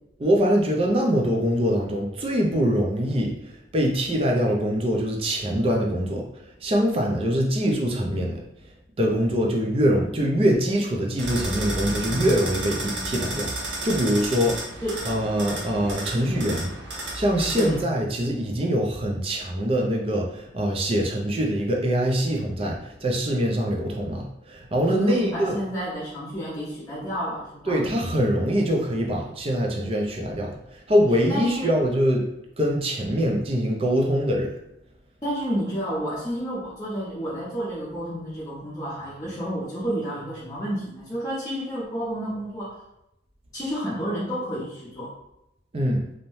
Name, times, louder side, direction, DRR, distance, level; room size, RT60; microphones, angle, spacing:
voice 1, 0.2-8.4 9.0-14.6 15.0-25.6 27.7-32.3 32.6-34.5 45.7-46.1, equal, 30° right, 0 dB, 0.4 m, -24 dB
sound 1, 11.2-17.8, right 2 dB, 80° right, 0.7 m, -32 dB
voice 2, 17.5-17.9 24.9-27.8 31.3-31.7 35.2-42.8 43.5-45.1, equal, 20° left, -10 dB, 0.5 m, -30 dB
2.6 x 2.1 x 3.0 m, 0.85 s
head